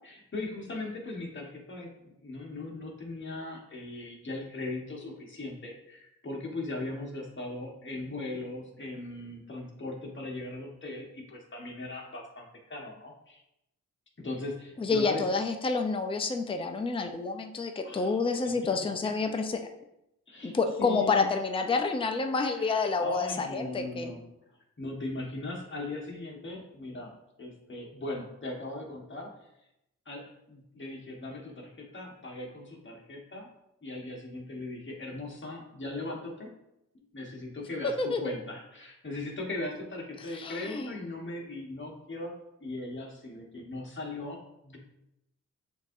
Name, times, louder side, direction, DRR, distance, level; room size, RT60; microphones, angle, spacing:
voice 1, 0.0-13.4 14.2-15.3 17.8-18.2 19.0-19.1 20.3-21.3 22.5-24.3 24.8-27.1 27.4-29.3 30.0-33.5 33.8-36.5 37.1-44.8, left 2 dB, 35° left, -1 dB, 1.4 m, -39 dB
voice 2, 14.8-19.6 20.4-24.1 38.0-38.2 40.3-40.9, left 4 dB, 15° left, 5 dB, 0.5 m, -29 dB
7.0 x 2.8 x 2.6 m, 0.83 s
cardioid pair, 65°, 34 cm